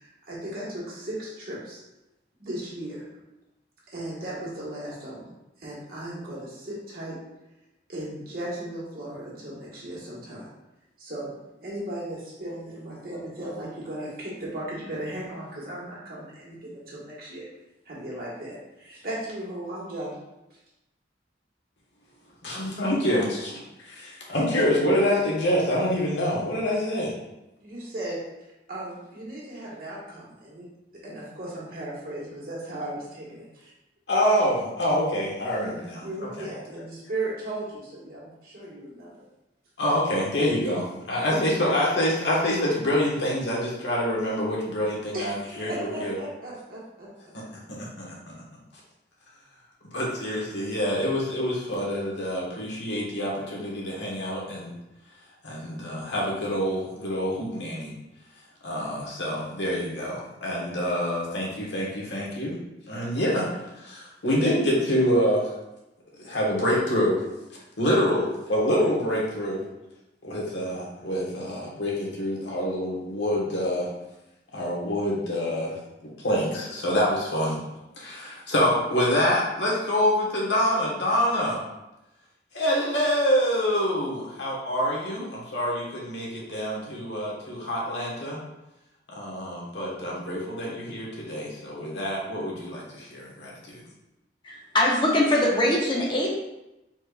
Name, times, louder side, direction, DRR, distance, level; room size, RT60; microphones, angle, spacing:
voice 1, 0.0-1.8 2.4-3.1 3.9-7.2 7.9-10.5 11.0-11.3 11.6-17.5 17.8-20.2 27.6-28.2 28.7-30.7 30.9-33.7 35.6-35.7 36.0-39.1 41.1-41.5 45.1-47.1, right 1 dB, 55° right, -5 dB, 1.6 m, -36 dB
voice 2, 22.4-27.1 34.1-36.5 39.8-46.1 47.3-48.1 49.9-54.7 55.4-57.9 58.6-62.6 62.9-63.5 63.8-65.5 66.2-67.2 67.8-69.6 70.2-73.9 74.5-75.8 76.2-77.6 78.0-81.6 82.5-88.4 89.1-93.8, equal, 85° left, -4 dB, 1.5 m, -26 dB
voice 3, 94.4-96.3, left 1 dB, 25° left, -2 dB, 0.8 m, -22 dB
4.7 x 4.4 x 2.4 m, 0.94 s
head